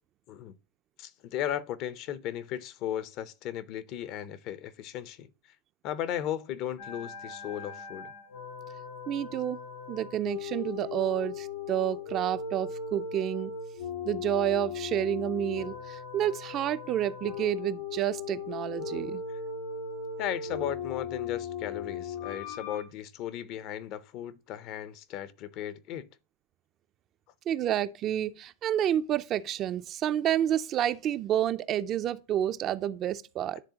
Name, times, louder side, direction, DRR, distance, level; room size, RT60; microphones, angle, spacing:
voice 1, 1.0-5.3 5.8-8.1 20.2-26.1, left 11 dB, 45° left, 0.5 m, -36 dB
sound 1, 6.8-22.8, left 5 dB, 70° left, 2.3 m, -38 dB
voice 2, 9.1-9.6 9.9-13.5 14.0-19.2 27.5-33.6, right 11 dB, 35° right, 0.4 m, -29 dB
10.0 x 3.5 x 2.8 m
hypercardioid pair, 125°, 0 cm